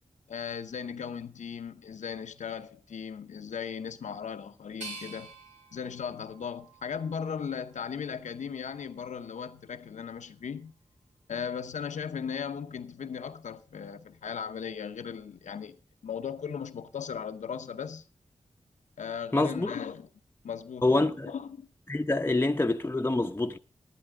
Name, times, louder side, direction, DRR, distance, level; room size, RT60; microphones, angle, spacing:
voice 1, 0.3-5.3 5.7-10.7 11.3-15.8 16.0-18.0 19.0-20.1 20.4-21.7, left 7 dB, 90° left, 0.8 m, -37 dB
sound 1, 4.8-7.7 8.3-9.1, right 3 dB, 85° right, 3.0 m, -48 dB
voice 2, 19.3-19.7 20.8-21.3 21.9-23.6, left 2 dB, 20° left, 0.9 m, -26 dB
14.5 x 11.5 x 3.6 m
cardioid pair, 45°, 12 cm